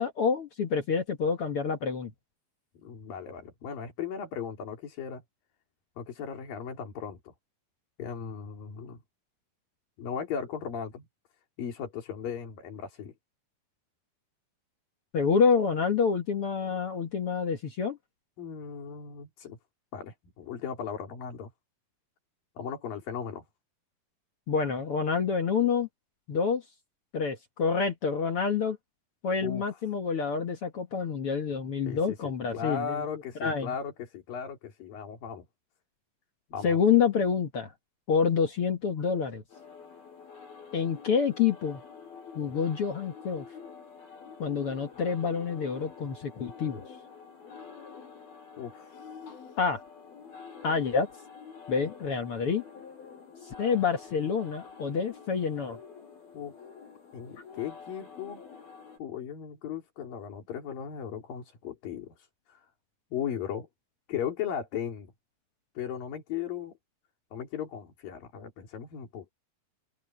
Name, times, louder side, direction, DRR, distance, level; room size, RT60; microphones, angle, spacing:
voice 1, 0.0-2.1 15.1-18.0 24.5-25.9 26.3-26.6 27.1-28.8 29.2-33.0 33.4-33.7 36.6-37.7 38.1-39.4 40.7-41.8 42.4-43.5 44.4-46.8 49.6-49.8 50.6-51.1 51.7-52.6 53.6-55.8, left 6 dB, 55° left, 1.8 m, -27 dB
voice 2, 2.7-5.2 6.0-7.3 8.0-9.0 10.0-11.1 11.6-13.1 18.4-19.6 19.9-21.5 22.6-23.4 29.4-29.8 31.9-35.4 36.5-36.8 48.6-49.1 56.3-56.5 57.1-58.4 59.0-62.7 63.1-63.7 64.1-65.1 65.7-66.7 67.3-69.3, left 7 dB, 70° left, 5.0 m, -37 dB
sound 1, 39.5-59.0, left 6 dB, 85° left, 5.7 m, -48 dB
omnidirectional pair, 4.2 m